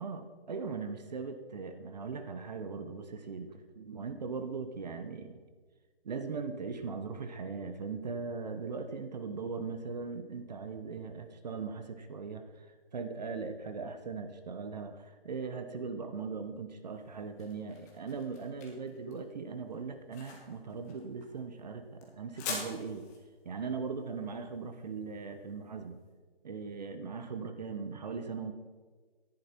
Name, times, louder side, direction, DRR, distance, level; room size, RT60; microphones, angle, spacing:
voice 1, 0.0-5.4 6.0-12.7 12.9-23.1 23.4-26.0 26.4-28.5, right 5 dB, 45° right, 9 dB, 0.9 m, -39 dB
sound 1, 16.9-25.9, left 4 dB, 15° left, 1.4 m, -46 dB
13.5 x 10.5 x 4.4 m, 1.4 s
hypercardioid pair, 160°, 30 cm